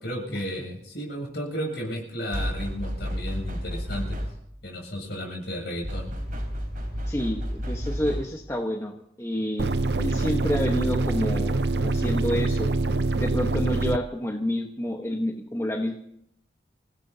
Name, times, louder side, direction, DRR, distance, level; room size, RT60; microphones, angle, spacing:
voice 1, 0.0-4.2 4.6-6.1, equal, 65° left, 1 dB, 7.7 m, -33 dB
sound 1, 2.3-4.6 5.8-8.5, equal, 45° right, 4.2 m, -31 dB
voice 2, 7.1-9.7 10.0-12.7 13.2-15.9, equal, 15° left, 2 dB, 1.3 m, -29 dB
sound 2, 9.6-14.0, right 2 dB, 65° right, 0.6 m, -25 dB
27.5 x 16.5 x 2.8 m, 0.73 s
head